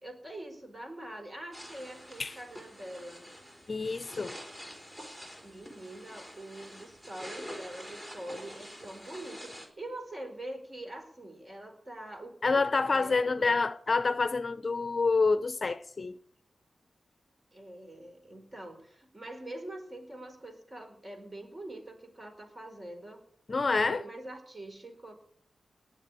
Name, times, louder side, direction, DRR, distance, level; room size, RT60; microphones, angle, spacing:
voice 1, 0.0-3.2 4.3-4.4 5.4-13.6 17.5-23.2 23.7-25.1, right 1 dB, 25° right, 4.5 m, -44 dB
sound 1, 1.5-9.7, equal, 10° right, 4.2 m, -47 dB
voice 2, 3.7-4.3 12.4-16.1 23.5-24.0, left 4 dB, 45° left, 0.7 m, -27 dB
19.0 x 6.9 x 9.8 m
cardioid pair, 75°, 0 cm